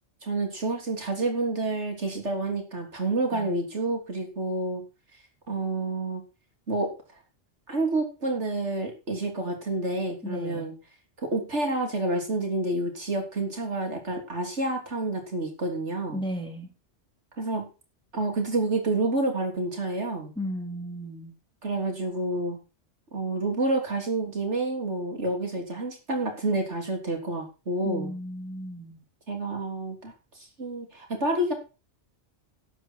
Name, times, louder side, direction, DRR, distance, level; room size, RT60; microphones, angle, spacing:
voice 1, 0.2-4.8 5.5-6.2 6.7-6.9 7.7-10.7 11.2-16.2 17.4-17.7 18.1-20.3 21.6-22.6 23.1-28.1 29.3-30.1 30.6-31.5, right 2 dB, 75° right, 3 dB, 3.7 m, -29 dB
voice 2, 10.2-10.7 16.1-16.7 20.4-21.3 27.8-29.0, equal, 5° left, 1 dB, 3.1 m, -35 dB
12.5 x 9.5 x 4.6 m, 0.31 s
omnidirectional pair, 1.2 m